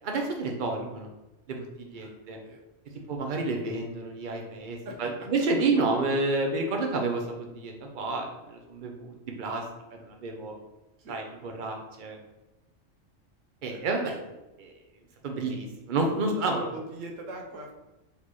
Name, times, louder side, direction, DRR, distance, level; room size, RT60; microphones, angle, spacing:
voice 1, 0.0-1.1 1.5-2.4 3.1-9.6 9.9-10.5 11.1-12.2 13.6-14.1 14.6-14.7 15.2-16.7, right 3 dB, 50° right, 2 dB, 0.7 m, -30 dB
voice 2, 13.7-14.2 16.1-17.7, right 2 dB, 85° right, 1 dB, 1.1 m, -41 dB
4.1 x 3.4 x 3.0 m, 1.0 s
omnidirectional pair, 1.3 m